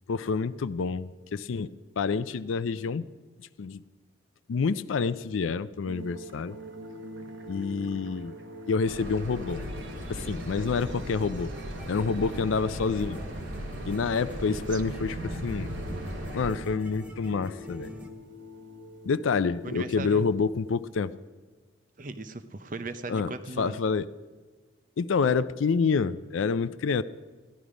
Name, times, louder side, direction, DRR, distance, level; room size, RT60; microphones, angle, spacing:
voice 1, 0.1-3.1 3.6-3.8 4.5-6.6 7.5-8.4 8.7-9.6 10.1-11.5 11.9-13.2 13.8-15.7 16.3-17.9 19.0-21.1 23.1-23.3 23.6-24.1 25.0-27.0, left 5 dB, 85° left, 14 dB, 0.4 m, -28 dB
sound 1, 5.8-21.1, left 1 dB, 70° right, 1.3 m, -45 dB
sound 2, 8.8-16.5, equal, 85° right, 2.0 m, -38 dB
sound 3, 9.5-18.1, equal, 5° right, 0.9 m, -45 dB
voice 2, 14.5-14.8 19.6-20.3 22.0-23.8, right 3 dB, 40° right, 10 dB, 0.7 m, -38 dB
15.0 x 11.5 x 5.0 m, 1.4 s
head